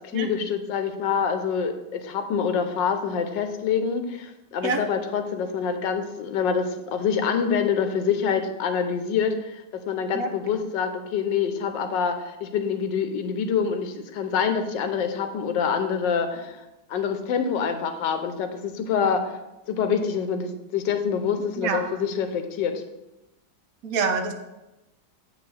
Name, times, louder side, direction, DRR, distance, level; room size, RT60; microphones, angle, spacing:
voice 1, 0.1-16.6 16.9-19.4 19.7-22.8, left 6 dB, 90° left, 7 dB, 1.4 m, -26 dB
voice 2, 21.6-22.0 23.8-24.3, right 4 dB, 60° right, 5 dB, 1.1 m, -26 dB
7.9 x 6.2 x 3.3 m, 0.98 s
omnidirectional pair, 1.9 m